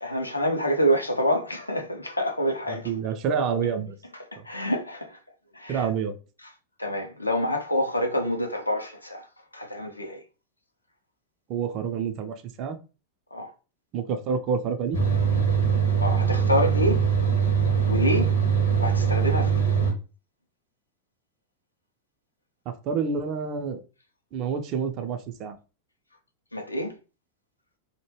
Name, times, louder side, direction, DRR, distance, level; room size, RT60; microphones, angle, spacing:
voice 1, 0.0-2.9 4.3-5.2 5.5-5.9 6.8-9.3 9.5-10.2 13.3-13.5 16.0-17.0 17.8-18.3 18.8-19.7 26.5-26.9, equal, 85° left, 0.4 m, -27 dB
voice 2, 2.7-4.0 4.4-4.5 5.7-6.2 11.5-12.8 13.9-15.0 22.7-23.8 24.3-25.6, right 6 dB, 40° right, 0.4 m, -28 dB
sound 1, 14.9-19.9, right 7 dB, 65° left, 0.8 m, -22 dB
2.1 x 2.1 x 3.1 m
figure-of-eight pair, 90°, 0 cm